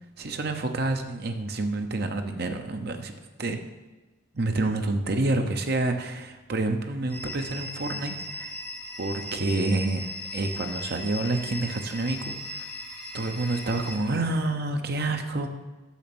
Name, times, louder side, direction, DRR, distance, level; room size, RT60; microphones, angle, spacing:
voice 1, 0.2-3.1 3.4-3.6 4.3-8.5 9.0-12.7 13.1-15.5, right 2 dB, 55° right, 5 dB, 0.8 m, -28 dB
sound 1, 7.1-14.0, left 1 dB, 10° left, 1.8 m, -38 dB
7.1 x 6.4 x 6.1 m, 1.2 s
head